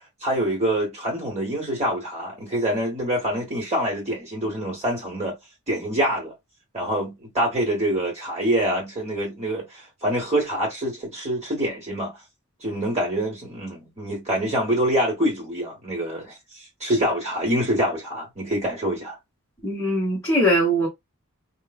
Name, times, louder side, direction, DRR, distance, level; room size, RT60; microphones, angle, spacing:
voice 1, 0.2-5.4 5.7-6.3 6.7-12.2 12.6-19.2, right 1 dB, 30° right, 1.1 m, -25 dB
voice 2, 19.6-20.9, equal, 15° left, 1.0 m, -21 dB
4.5 x 2.0 x 2.3 m
head